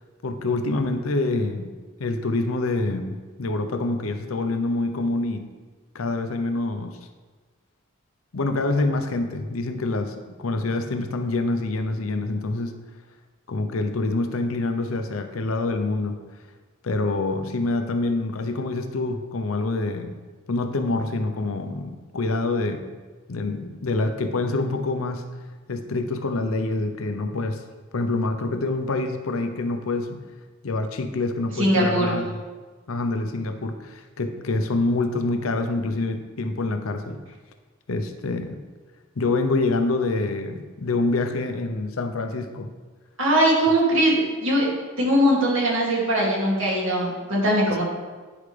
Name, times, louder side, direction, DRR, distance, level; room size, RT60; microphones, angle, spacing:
voice 1, 0.2-1.7 2.0-5.5 5.9-7.0 8.3-12.8 13.5-16.2 16.8-20.2 20.5-22.9 23.3-25.4 25.7-27.6 27.9-30.2 30.6-32.4 32.9-37.2 37.9-38.6 39.2-42.7, left 2 dB, 90° left, 7 dB, 0.7 m, -26 dB
voice 2, 31.6-32.2 43.2-44.7 45.0-47.8, right 1 dB, 65° right, -5 dB, 2.3 m, -21 dB
10.5 x 4.8 x 3.3 m, 1.4 s
head